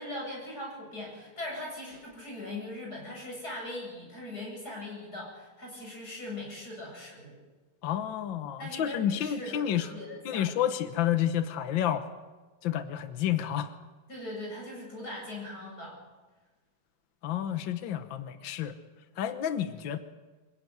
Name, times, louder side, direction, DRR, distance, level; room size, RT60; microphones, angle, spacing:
voice 1, 0.0-7.4 8.6-10.4 14.1-16.0, left 1 dB, 45° left, -2 dB, 8.8 m, -40 dB
voice 2, 7.8-9.9 10.3-12.1 12.6-13.7 17.2-18.7 19.2-20.0, left 10 dB, 65° left, 9 dB, 1.8 m, -30 dB
26.0 x 15.5 x 9.5 m, 1.2 s
omnidirectional pair, 2.3 m